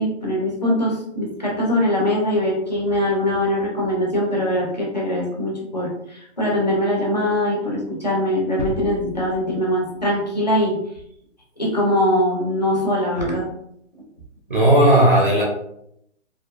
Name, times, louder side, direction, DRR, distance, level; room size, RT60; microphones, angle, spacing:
voice 1, 0.0-10.8 11.6-13.5, left 1 dB, 35° left, -2 dB, 0.4 m, -22 dB
sound 1, 8.6-10.4 10.7-10.8, right 1 dB, 80° right, 0.7 m, -35 dB
voice 2, 14.5-15.4, right 1 dB, 45° right, -3 dB, 0.5 m, -14 dB
2.5 x 2.3 x 2.3 m, 0.75 s
hypercardioid pair, 180°, 38 cm